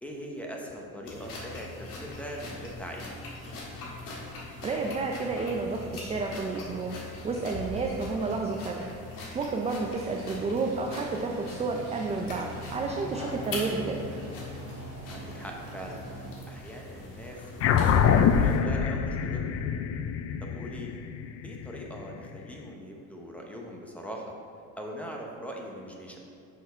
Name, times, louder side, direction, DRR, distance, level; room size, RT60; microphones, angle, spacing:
voice 1, 0.0-3.1 7.7-7.8 15.1-16.0 16.5-17.5 17.7-19.4 20.4-21.0 21.4-24.4 24.8-26.2, equal, 5° left, 0 dB, 0.8 m, -41 dB
sound 1, 1.0-18.6, left 2 dB, 65° left, 1.5 m, -42 dB
voice 2, 4.6-7.0 7.2-8.8 9.3-14.0, right 3 dB, 20° right, 1 dB, 0.4 m, -31 dB
sound 2, 10.0-16.3, right 2 dB, 45° right, 1.4 m, -44 dB
sound 3, 17.6-22.4, left 7 dB, 45° left, 0.4 m, -25 dB
6.2 x 4.7 x 5.1 m, 2.5 s
cardioid pair, 135°, 36 cm